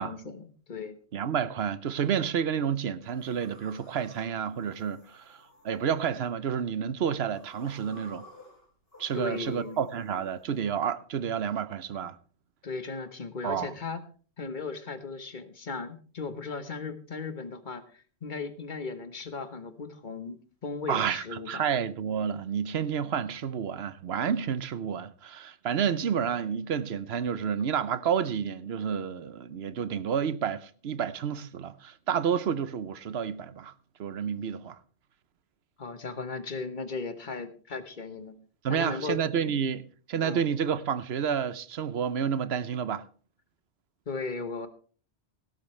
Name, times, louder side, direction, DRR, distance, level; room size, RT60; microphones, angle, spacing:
voice 1, 0.0-0.9 9.1-9.8 12.6-14.0 14.4-21.7 35.8-38.4 38.7-39.2 39.5-39.6 40.2-40.4 44.1-44.7, left 4 dB, 45° left, 1.4 m, -37 dB
voice 2, 1.1-8.2 9.0-12.2 13.4-13.7 20.9-33.7 34.0-34.8 38.6-43.1, right 7 dB, 70° right, 1.0 m, -30 dB
sound 1, 3.0-6.6 7.1-10.8, left 1 dB, 60° left, 4.1 m, -55 dB
17.0 x 12.0 x 3.2 m
omnidirectional pair, 1.1 m